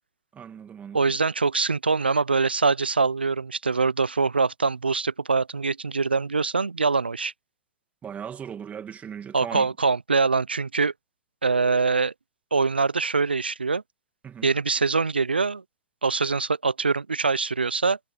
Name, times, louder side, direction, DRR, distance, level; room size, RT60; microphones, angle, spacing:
voice 1, 0.3-1.1 8.0-9.7 14.2-14.5, right 8 dB, 25° right, 2.3 m, -38 dB
voice 2, 0.9-7.3 9.3-10.9 11.4-12.1 12.5-13.8 14.4-15.6 16.0-18.0, right 4 dB, 85° right, 0.8 m, -23 dB
figure-of-eight pair, 90°, 5 cm